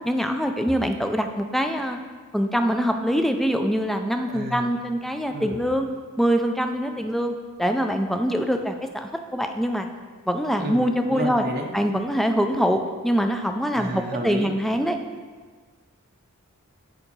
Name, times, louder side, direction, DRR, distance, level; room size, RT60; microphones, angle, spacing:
voice 1, 0.0-2.0 2.3-5.9 6.2-9.9 10.3-11.4 11.7-15.0, equal, ahead, 5 dB, 0.4 m, -24 dB
voice 2, 4.3-4.7 5.3-5.6 10.6-11.7 13.7-14.5, right 1 dB, 45° right, 1 dB, 0.7 m, -31 dB
7.1 x 4.8 x 5.3 m, 1.5 s
head